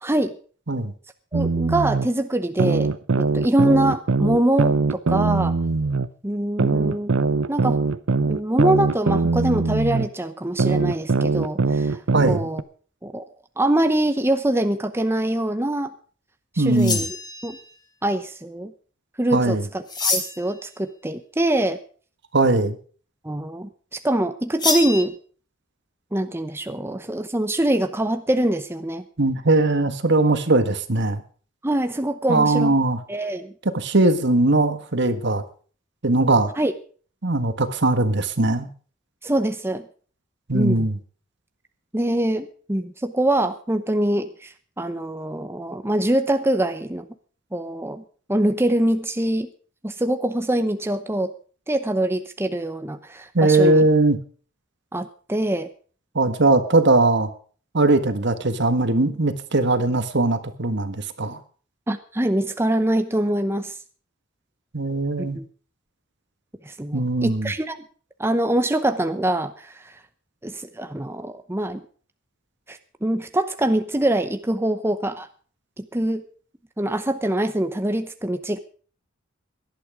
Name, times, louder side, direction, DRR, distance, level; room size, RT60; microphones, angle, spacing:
voice 1, 0.0-0.4 1.3-5.5 6.2-7.1 7.5-7.8 8.3-12.0 12.3-12.6 13.0-13.3 13.6-15.9 16.5-17.1 17.4-17.6 18.0-18.7 19.2-21.8 23.2-25.1 26.1-29.0 31.6-32.7 33.1-33.5 36.6-36.7 39.2-39.8 40.5-40.9 41.9-47.1 47.5-48.0 48.3-49.5 49.8-51.3 51.7-53.9 54.9-55.7 61.9-63.7 65.3-65.5 66.6-67.8 68.2-69.9 70.4-71.8 72.7-75.3 75.8-76.2 76.8-78.6, right 1 dB, 10° right, 9 dB, 0.8 m, -24 dB
sound 1, 1.3-2.1 2.6-6.1 6.6-10.1 10.6-12.6, right 3 dB, 90° right, 0.7 m, -21 dB
voice 2, 12.1-12.5 16.6-17.0 19.3-19.6 22.3-22.8 29.2-31.2 32.3-33.0 33.7-35.4 36.0-36.5 37.2-38.7 40.5-41.0 53.3-54.2 56.1-57.3 57.7-61.4 64.7-65.4 66.9-67.5, right 2 dB, 60° right, 10 dB, 1.6 m, -20 dB
sound 2, 16.7-17.7 19.9-20.6 24.6-25.0, left 4 dB, 20° left, 3.1 m, -25 dB
18.0 x 12.0 x 5.0 m, 0.42 s
head